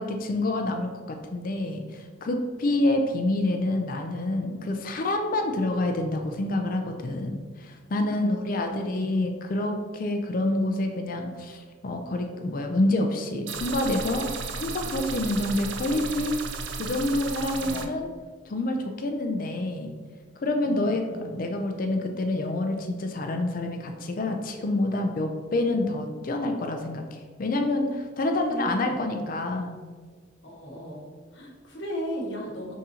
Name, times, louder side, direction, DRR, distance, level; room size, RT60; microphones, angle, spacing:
voice 1, 0.0-16.4 16.7-18.1 18.5-20.0 20.4-29.8, left 2 dB, 50° left, 4 dB, 0.4 m, -27 dB
voice 2, 8.1-9.1 17.5-17.9 20.6-21.4 28.2-29.3 30.4-32.8, equal, 85° left, -2 dB, 1.0 m, -37 dB
sound 1, 13.5-17.9, right 4 dB, 80° right, 0.4 m, -34 dB
5.2 x 3.6 x 2.8 m, 1.5 s
head